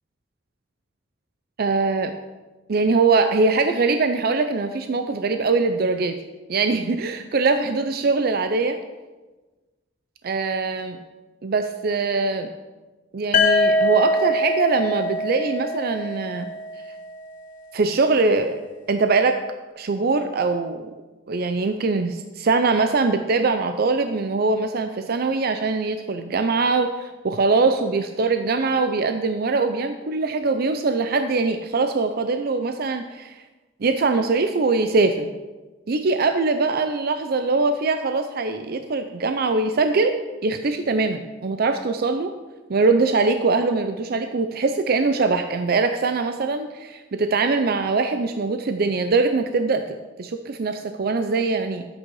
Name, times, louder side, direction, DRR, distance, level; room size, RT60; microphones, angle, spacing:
voice 1, 1.6-2.1 2.7-6.2 6.5-8.8 10.2-11.0 11.4-12.5 13.1-16.5 17.7-18.6 18.9-19.4 19.8-20.9 21.3-33.4 33.8-35.3 35.9-42.3 42.7-51.9, right 3 dB, 55° right, 8 dB, 0.5 m, -22 dB
sound 1, 13.3-17.2, left 1 dB, 45° left, 0.7 m, -23 dB
11.0 x 8.3 x 4.7 m, 1.2 s
head